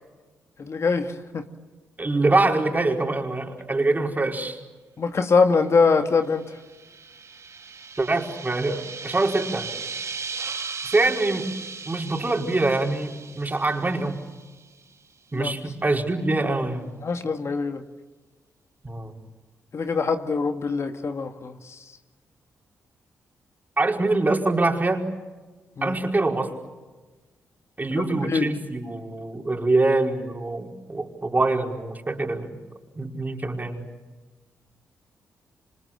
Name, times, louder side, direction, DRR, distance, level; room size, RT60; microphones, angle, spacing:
voice 1, 0.6-1.4 5.0-6.4 15.3-15.5 17.0-17.8 19.7-21.6 25.8-26.0 28.0-28.5, left 4 dB, 50° left, 7 dB, 2.1 m, -23 dB
voice 2, 2.0-4.6 8.0-9.7 10.8-11.5 11.8-14.2 15.3-16.9 18.8-19.2 23.8-25.1 25.8-26.5 27.8-32.6 33.0-33.8, right 2 dB, 30° right, 2 dB, 5.0 m, -24 dB
sound 1, 6.3-14.6, right 5 dB, 55° right, 2.6 m, -37 dB
28.5 x 26.0 x 7.7 m, 1.3 s
hypercardioid pair, 45°, 6 cm